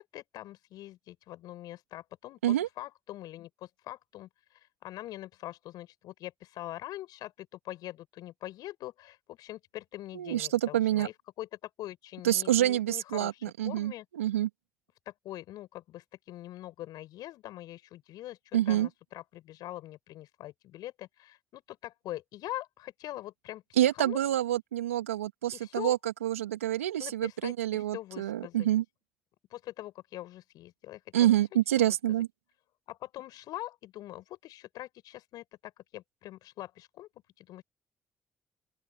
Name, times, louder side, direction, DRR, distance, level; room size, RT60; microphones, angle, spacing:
voice 1, 0.0-14.1 15.1-24.2 25.5-26.0 27.0-28.7 29.5-31.4 31.8-32.0 32.9-37.1 37.4-37.6, left 15 dB, 70° left, 5.2 m, -43 dB
voice 2, 10.1-11.1 12.2-13.9 14.2-14.5 18.5-18.9 23.8-28.8 31.1-32.3, right 12 dB, 85° right, 2.8 m, -27 dB
open air
hypercardioid pair, 45°, 7 cm